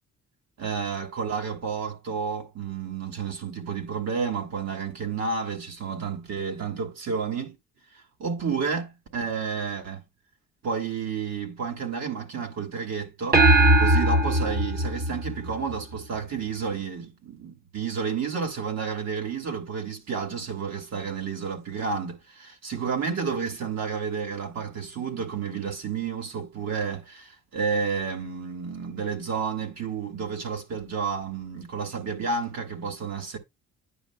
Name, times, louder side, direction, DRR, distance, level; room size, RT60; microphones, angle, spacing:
voice 1, 0.6-7.6 8.2-10.0 10.6-13.5 13.8-33.4, right 5 dB, 60° right, 1.9 m, -31 dB
sound 1, 13.3-16.0, right 1 dB, 30° right, 1.2 m, -20 dB
9.7 x 5.3 x 2.2 m
cardioid pair, 90°, 30 cm